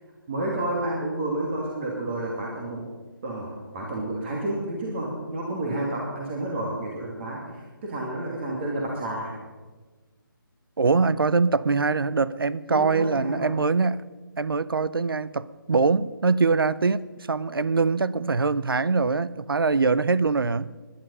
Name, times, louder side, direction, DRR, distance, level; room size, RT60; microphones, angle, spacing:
voice 1, 0.3-2.9 3.2-9.4 12.7-13.5, right 1 dB, 30° right, -2 dB, 2.5 m, -30 dB
voice 2, 10.8-14.0 14.4-20.7, right 4 dB, 80° right, 17 dB, 0.6 m, -23 dB
17.5 x 11.5 x 5.5 m, 1.3 s
figure-of-eight pair, 160°, 12 cm